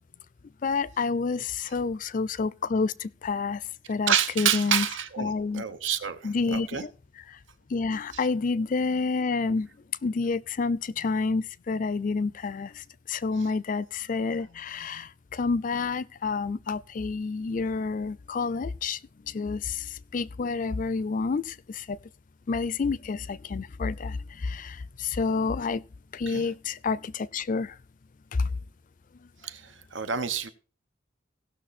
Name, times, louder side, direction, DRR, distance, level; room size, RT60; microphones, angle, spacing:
voice 1, 0.6-3.6 3.9-4.9 5.2-5.6 6.2-6.9 7.7-9.7 10.0-12.7 13.1-19.0 19.3-19.8 20.1-22.0 22.5-25.8 26.1-27.7, left 4 dB, 45° left, 0.4 m, -29 dB
voice 2, 4.1-6.8 8.1-8.3 13.4-13.5 26.3-26.5 29.4-30.5, right 8 dB, 85° right, 1.1 m, -29 dB
17.0 x 6.3 x 4.2 m
head